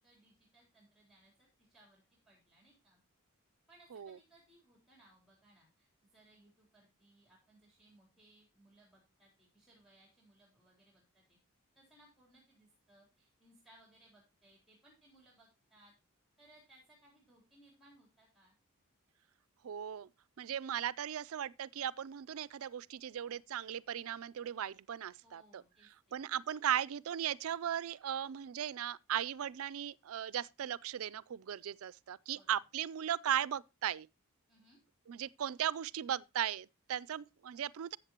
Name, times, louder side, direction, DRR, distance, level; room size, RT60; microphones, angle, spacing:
voice 1, 0.0-3.0 3.7-11.4 11.8-15.9 16.4-18.5 25.2-26.2 32.3-32.5 34.5-34.8, right 1 dB, ahead, 3.7 m, -65 dB
voice 2, 19.6-20.1 20.4-25.6 26.1-34.1 35.1-38.0, right 10 dB, 75° right, 0.4 m, -37 dB
13.0 x 8.3 x 2.9 m
head